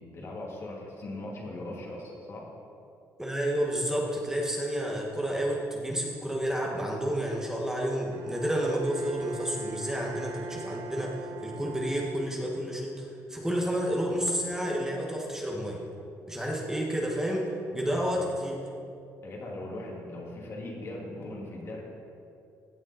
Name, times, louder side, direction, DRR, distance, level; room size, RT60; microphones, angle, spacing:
voice 1, 0.0-2.5 17.9-18.2 19.2-21.8, left 1 dB, 45° left, -2 dB, 2.5 m, -39 dB
voice 2, 3.2-15.8 16.3-17.5 17.7-18.6, equal, 10° right, -2 dB, 1.8 m, -30 dB
Bowed string instrument, 8.1-12.7, right 3 dB, 80° right, 0.7 m, -42 dB
16.0 x 7.2 x 4.3 m, 2.5 s
cardioid pair, 100°, 6 cm